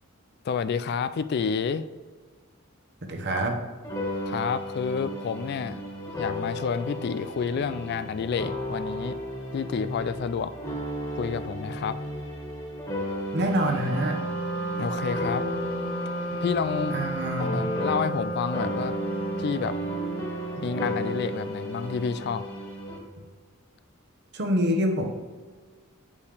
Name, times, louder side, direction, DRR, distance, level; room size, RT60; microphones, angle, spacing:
voice 1, 0.4-1.8 4.3-5.8 6.2-9.2 9.5-10.5 11.2-12.0 14.8-15.4 16.4-17.0 17.4-18.9 19.4-19.8 20.6-22.4, left 6 dB, 50° left, 13 dB, 0.3 m, -29 dB
voice 2, 3.1-3.6 13.3-14.2 16.9-17.7 24.3-25.1, equal, 50° right, 3 dB, 1.0 m, -26 dB
sound 1, 3.8-18.3 18.5-23.0, equal, 15° left, 1.7 m, -34 dB
Wind instrument woodwind instrument, 13.4-21.3, right 2 dB, 85° left, 1.2 m, -33 dB
8.3 x 5.5 x 3.4 m, 1.4 s
head